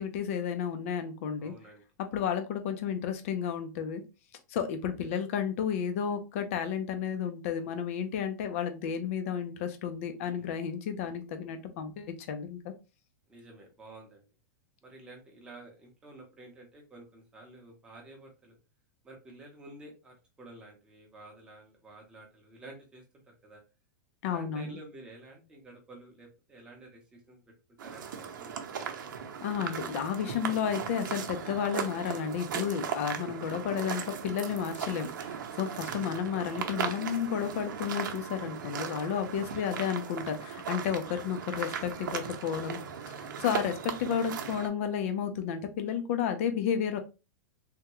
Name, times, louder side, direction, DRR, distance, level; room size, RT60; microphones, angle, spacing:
voice 1, 0.0-1.5 2.0-4.0 4.5-12.7 24.2-24.8 29.4-42.8 43.1-43.2 43.4-47.0, left 8 dB, 45° left, 8 dB, 0.5 m, -32 dB
voice 2, 1.4-1.8 5.0-5.1 10.2-10.5 13.3-14.3 14.8-18.6 19.0-23.6 24.3-27.4 27.8-28.9 33.6-33.7 35.9-36.1 39.5-39.6, right 2 dB, 10° right, -1 dB, 0.7 m, -51 dB
sound 1, 27.8-44.7, right 7 dB, 90° right, 0.7 m, -37 dB
3.5 x 2.1 x 2.9 m, 0.29 s
supercardioid pair, 175°, 10 cm